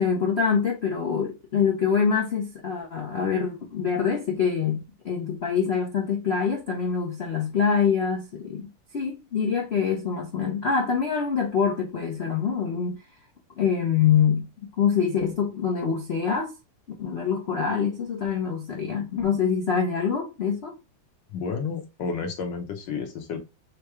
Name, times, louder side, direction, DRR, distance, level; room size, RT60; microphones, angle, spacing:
voice 1, 0.0-4.8 5.0-8.7 8.9-13.0 13.6-14.5 14.8-16.5 17.0-20.7, left 6 dB, 80° left, 0.5 m, -25 dB
voice 2, 21.3-23.4, left 5 dB, 65° left, 1.4 m, -31 dB
4.7 x 2.2 x 4.7 m
omnidirectional pair, 2.4 m